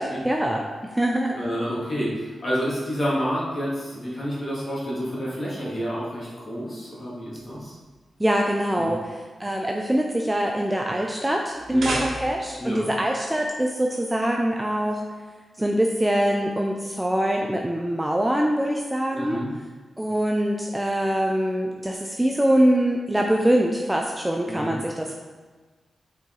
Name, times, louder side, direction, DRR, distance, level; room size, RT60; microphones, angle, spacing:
voice 1, 0.0-1.4 8.2-9.0 9.4-15.0 15.6-19.4 20.0-25.1, right 1 dB, 10° right, 1 dB, 0.4 m, -23 dB
voice 2, 1.3-7.8 8.8-8.9 11.7-12.0 12.6-12.9 19.1-19.5 24.5-24.8, equal, 30° left, -7 dB, 2.3 m, -29 dB
sound 1, 11.5-12.6, right 2 dB, 70° right, 1.3 m, -31 dB
8.3 x 4.6 x 3.9 m, 1.4 s
wide cardioid pair, 150°, 0 cm